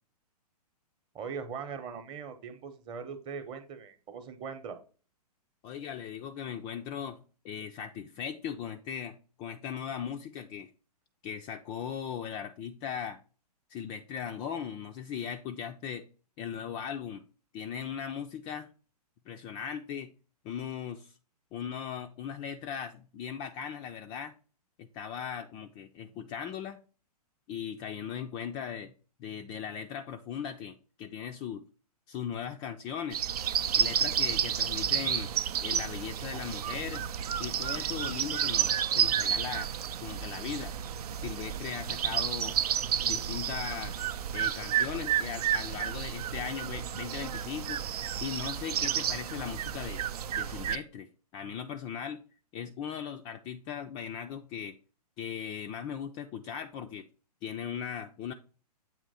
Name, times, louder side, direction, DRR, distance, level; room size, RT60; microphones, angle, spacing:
voice 1, 1.1-4.8, right 6 dB, 25° right, 8 dB, 0.8 m, -40 dB
voice 2, 5.6-10.7 11.2-13.2 13.7-16.1 16.4-17.2 17.5-18.7 19.3-20.1 20.4-21.2 21.5-24.3 24.8-26.8 27.5-28.9 29.2-31.6 32.1-33.2 33.7-35.3 35.6-37.0 37.4-39.7 40.0-40.7 41.2-42.6 43.0-47.8 48.2-50.0 50.3-51.1 51.3-52.2 52.5-54.8 55.2-57.1 57.4-58.3, left 8 dB, 20° left, 5 dB, 0.3 m, -38 dB
sound 1, 33.1-50.8, right 9 dB, 70° right, 0.5 m, -31 dB
7.7 x 3.0 x 4.1 m, 0.37 s
hypercardioid pair, 130°, 21 cm